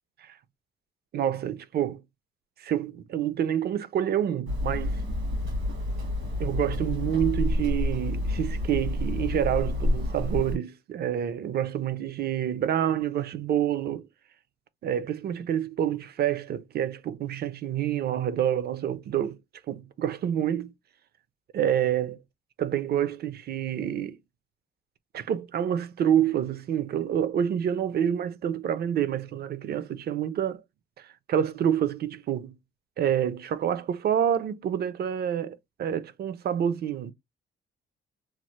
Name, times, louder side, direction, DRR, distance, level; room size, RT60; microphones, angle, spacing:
voice 1, 1.1-2.0 2.6-5.0 6.4-14.1 14.8-19.4 19.7-20.7 21.5-22.2 22.6-24.2 25.1-30.6 31.0-32.6 33.0-37.1, right 9 dB, 55° right, 0.5 m, -28 dB
Hammer, 4.5-10.6, left 1 dB, 80° right, 1.4 m, -29 dB
3.1 x 2.0 x 3.1 m
cardioid pair, 90°, 20 cm